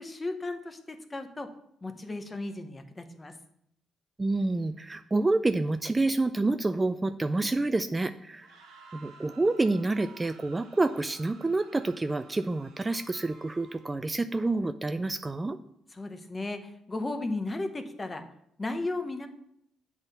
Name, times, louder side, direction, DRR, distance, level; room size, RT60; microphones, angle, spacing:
voice 1, 0.0-1.5 1.8-3.3 15.9-18.2 18.6-19.3, left 2 dB, 25° left, 7 dB, 0.8 m, -35 dB
voice 2, 4.2-8.5 8.9-15.6, right 2 dB, 20° right, 10 dB, 0.3 m, -28 dB
sound 1, 8.3-14.1, right 4 dB, 90° right, 1.1 m, -54 dB
8.1 x 3.6 x 5.5 m, 0.75 s
cardioid pair, 90°, 0 cm